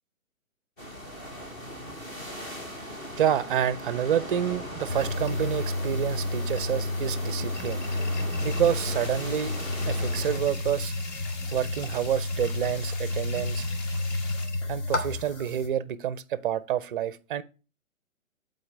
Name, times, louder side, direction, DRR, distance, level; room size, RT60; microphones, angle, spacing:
sound 1, 0.8-10.4, equal, 10° left, 0.5 m, -38 dB
voice 1, 3.2-7.8 8.4-9.5 9.9-10.9 11.5-13.7 14.7-17.4, right 10 dB, 40° right, 0.5 m, -28 dB
sound 2, 4.9-15.7, left 2 dB, 60° left, 1.5 m, -31 dB
sound 3, 8.4-14.5, left 2 dB, 30° left, 1.4 m, -44 dB
8.6 x 4.0 x 3.2 m
figure-of-eight pair, 130°, 41 cm